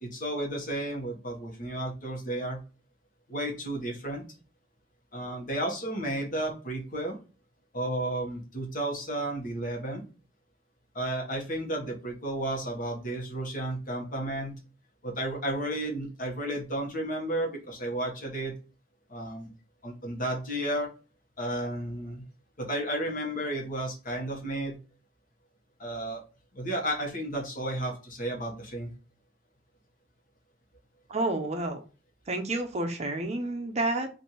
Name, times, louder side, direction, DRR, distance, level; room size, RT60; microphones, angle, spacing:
voice 1, 0.0-2.6 3.3-4.2 5.1-7.2 7.7-10.0 10.9-14.6 15.0-18.5 19.1-19.5 19.8-20.9 21.4-22.2 22.6-24.8 25.8-26.2 26.5-28.9, right 1 dB, 45° left, 0 dB, 1.2 m, -32 dB
voice 2, 31.1-31.8 32.3-34.1, right 2 dB, 35° right, 5 dB, 0.5 m, -30 dB
3.2 x 2.6 x 4.1 m, 0.35 s
head